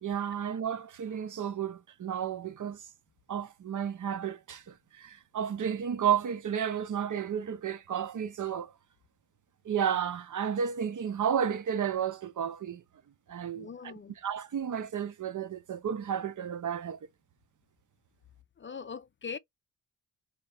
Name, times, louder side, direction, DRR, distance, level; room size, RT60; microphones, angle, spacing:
voice 1, 0.0-2.8 3.3-8.7 9.6-12.8 13.3-13.9 14.2-17.0, right 8 dB, 55° right, 0.7 m, -32 dB
voice 2, 13.5-14.2 18.6-19.4, left 5 dB, 30° left, 0.4 m, -41 dB
3.9 x 2.8 x 3.3 m
cardioid pair, 75°, 37 cm